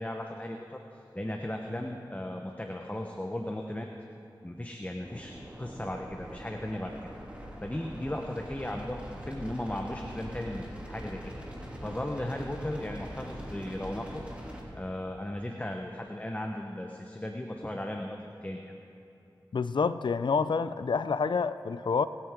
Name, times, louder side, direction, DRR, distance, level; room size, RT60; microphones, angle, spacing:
voice 1, 0.0-3.9 4.4-5.3 5.6-7.0 7.6-11.3 11.8-14.2 14.7-18.7, left 1 dB, 20° left, 2 dB, 1.0 m, -36 dB
sound 1, 5.0-14.6, equal, 15° right, 2.9 m, -43 dB
voice 2, 19.5-22.1, left 5 dB, 65° left, 13 dB, 0.4 m, -28 dB
26.5 x 8.9 x 3.7 m, 2.9 s
cardioid pair, 40°, 8 cm